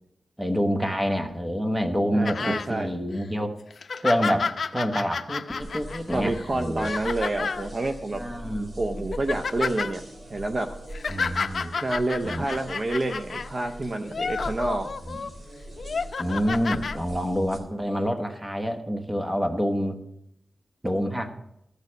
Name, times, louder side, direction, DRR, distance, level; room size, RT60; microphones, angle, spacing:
voice 1, 0.4-3.5 4.0-6.9 8.2-8.9 11.1-11.7 12.2-12.5 15.1-15.2 16.2-20.0 20.8-21.3, equal, 10° right, 5 dB, 1.2 m, -27 dB
voice 2, 2.1-2.9 6.1-8.2 8.8-10.0 10.3-10.7 11.8-14.9, right 2 dB, 40° right, 6 dB, 0.6 m, -28 dB
sound 1, 2.3-2.7 3.2-3.3 3.7-7.7 8.4-8.6 9.0-9.9 10.7-13.5 14.0-15.3 15.8-17.0 17.9-18.0, left 5 dB, 60° left, 0.5 m, -31 dB
sound 2, 5.6-17.6, equal, 55° right, 2.9 m, -41 dB
14.5 x 6.6 x 6.3 m, 0.80 s
wide cardioid pair, 140°, 0 cm